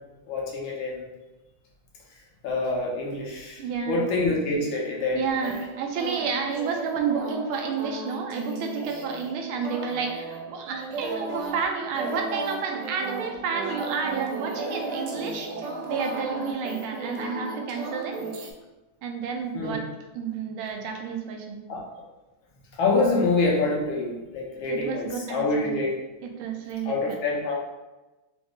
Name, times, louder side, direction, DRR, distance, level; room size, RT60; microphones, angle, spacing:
voice 1, 0.3-1.0 2.4-3.6 3.9-5.2 9.5-9.6 19.5-19.8 21.7-21.9 22.8-25.9 26.8-27.6, left 3 dB, 75° left, -2 dB, 1.6 m, -26 dB
voice 2, 3.6-4.1 5.1-15.5 15.9-18.3 19.0-19.9 20.1-21.6 24.7-25.8 26.2-27.2, right 6 dB, 90° right, 3 dB, 1.5 m, -31 dB
sound 1, 5.3-18.5, right 3 dB, 70° right, 1.1 m, -34 dB
4.8 x 2.0 x 3.6 m, 1.1 s
omnidirectional pair, 2.2 m